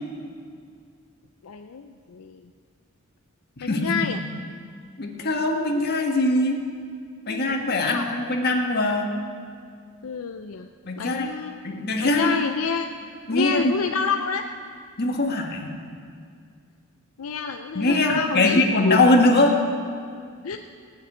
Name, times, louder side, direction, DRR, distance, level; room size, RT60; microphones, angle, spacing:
voice 1, 1.4-2.4 3.6-4.2 7.3-8.1 10.0-10.7 11.0-11.6 12.0-12.9 13.3-14.4 17.2-19.0 20.4-20.6, left 5 dB, 75° left, 6 dB, 0.5 m, -28 dB
voice 2, 3.6-4.0 5.0-6.6 7.3-9.1 10.9-11.3 11.6-12.3 13.3-13.7 15.0-15.8 17.8-19.6, left 2 dB, 50° left, 1 dB, 1.7 m, -22 dB
17.0 x 7.1 x 9.9 m, 2.3 s
head